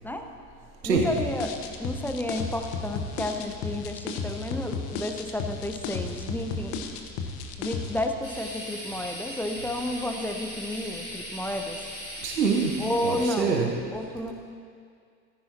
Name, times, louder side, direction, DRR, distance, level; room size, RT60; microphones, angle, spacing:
voice 1, 0.8-6.7 7.6-11.8 12.8-13.6 13.9-14.3, left 1 dB, 5° left, 5 dB, 0.8 m, -31 dB
sound 1, 1.0-8.1, left 5 dB, 50° left, 1.2 m, -33 dB
sound 2, 8.2-13.3, equal, 90° left, 3.6 m, -39 dB
voice 2, 12.2-12.8 13.0-13.7, right 5 dB, 80° right, 1 dB, 1.1 m, -25 dB
15.5 x 14.5 x 2.9 m, 2.2 s
figure-of-eight pair, 65°, 49 cm